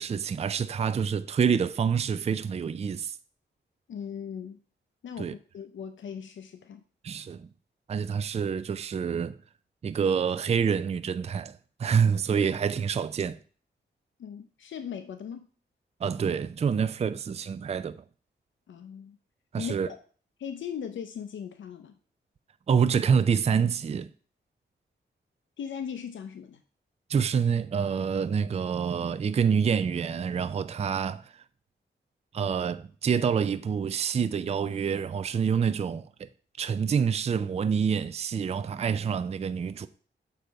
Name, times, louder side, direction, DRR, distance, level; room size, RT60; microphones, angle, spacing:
voice 1, 0.0-3.2 5.2-5.3 7.0-7.5 7.9-9.4 9.8-13.4 16.0-18.0 19.5-19.9 22.7-24.1 27.1-31.2 32.3-36.3 36.6-39.9, right 6 dB, 35° right, 0.3 m, -27 dB
voice 2, 3.9-4.6 5.0-6.8 14.2-15.5 18.7-19.2 19.6-20.0 20.4-22.0 25.6-26.6, left 7 dB, 80° left, 0.5 m, -38 dB
6.7 x 4.0 x 4.6 m
wide cardioid pair, 100°, 19 cm